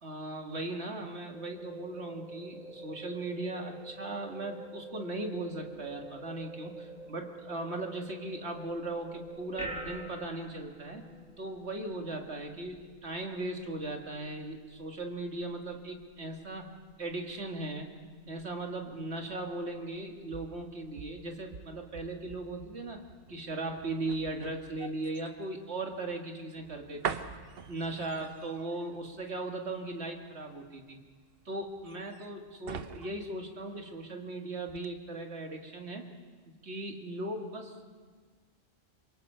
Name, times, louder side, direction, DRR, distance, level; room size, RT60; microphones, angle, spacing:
voice 1, 0.0-11.0 11.4-16.7 17.0-17.9 18.3-23.0 23.3-27.2 27.7-31.0 31.5-36.1 36.5-37.8, right 2 dB, 85° right, 2 dB, 2.4 m, -38 dB
sound 1, 1.3-10.1, right 3 dB, 45° right, 3.1 m, -47 dB
sound 2, 8.6-22.1, right 1 dB, 5° right, 2.5 m, -51 dB
sound 3, 19.9-34.3 34.6-34.9, right 7 dB, 65° right, 1.0 m, -45 dB
26.5 x 23.5 x 5.7 m, 1.5 s
omnidirectional pair, 1.1 m